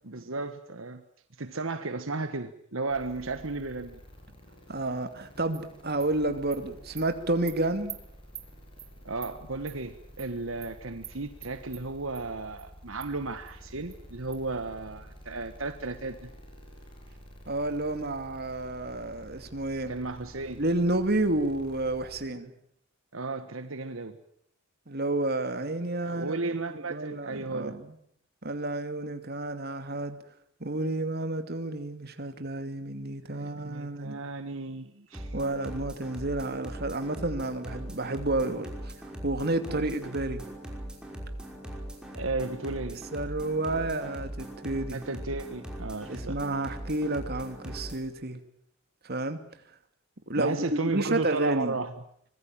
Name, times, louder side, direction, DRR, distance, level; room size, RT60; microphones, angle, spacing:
voice 1, 0.0-1.0 1.4-4.0 9.0-16.3 19.9-20.6 23.1-24.2 26.0-27.7 33.3-35.3 42.1-43.0 44.9-46.4 50.4-51.9, right 3 dB, 75° right, 1.5 m, -34 dB
sound 1, 2.9-22.2, equal, 25° left, 7.1 m, -50 dB
voice 2, 4.7-8.0 17.5-20.0 20.6-22.5 24.9-26.4 26.7-28.0 28.4-30.2 30.6-34.3 35.3-38.9 39.2-40.4 43.1-45.0 46.1-48.4 49.0-49.4 50.3-51.8, right 2 dB, 50° right, 2.5 m, -30 dB
Animal, 5.5-5.6 6.0-6.1 6.5-6.6 7.0-7.1 7.5-7.6 7.9-8.0 8.3-8.5 8.8-8.9 9.2-9.3 9.7-9.8 10.2-10.3 10.6-10.7 11.0-11.1 11.4-11.8 12.1-12.2 12.6-12.7 13.0-13.1 13.5-13.6 13.9-14.0 14.3-14.4, right 11 dB, 30° right, 3.0 m, -43 dB
sound 2, 35.1-48.0, right 1 dB, 5° right, 5.5 m, -40 dB
25.0 x 21.0 x 8.9 m
head